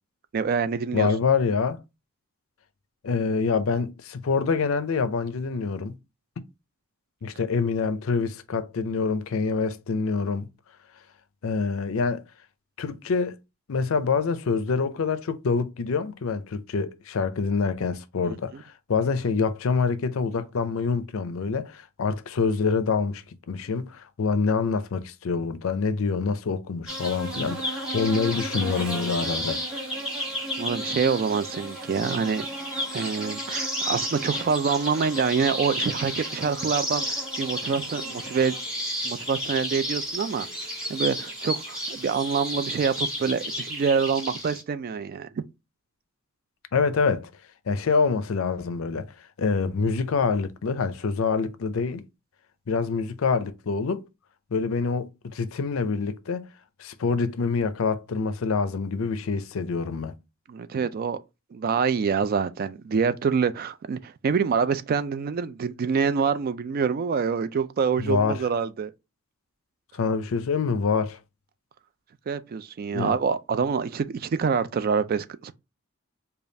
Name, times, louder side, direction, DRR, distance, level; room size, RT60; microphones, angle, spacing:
voice 1, 0.3-1.1 18.2-18.3 30.6-32.5 32.9-38.6 39.0-40.5 40.9-45.4 60.5-61.2 61.5-68.9 72.3-75.5, right 6 dB, 45° right, 0.3 m, -26 dB
voice 2, 0.9-1.8 3.0-5.9 7.2-10.5 11.4-12.2 12.8-13.4 13.7-18.5 18.9-29.6 46.7-47.3 47.7-49.1 49.4-52.0 52.7-54.0 54.5-56.5 56.8-60.1 68.0-68.4 69.9-71.2 72.9-73.2, left 5 dB, 70° left, 0.5 m, -26 dB
sound 1, 26.9-44.6, equal, 5° right, 1.3 m, -32 dB
5.1 x 2.3 x 2.6 m
head